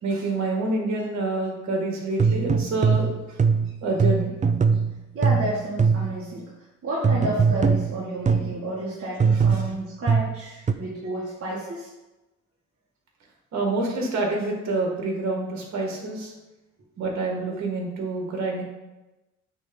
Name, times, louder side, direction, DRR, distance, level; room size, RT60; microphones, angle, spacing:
voice 1, 0.0-3.1 3.8-4.3 9.5-9.6 13.5-16.3 17.0-18.6, right 2 dB, 65° right, 0 dB, 2.2 m, -27 dB
sound 1, 2.2-6.2 7.0-8.6 9.2-10.7, right 5 dB, 25° right, 0.5 m, -22 dB
voice 2, 5.1-6.5 6.8-11.9, right 1 dB, 50° right, -6 dB, 1.9 m, -31 dB
8.3 x 3.5 x 5.5 m, 1.1 s
cardioid pair, 90°, 30 cm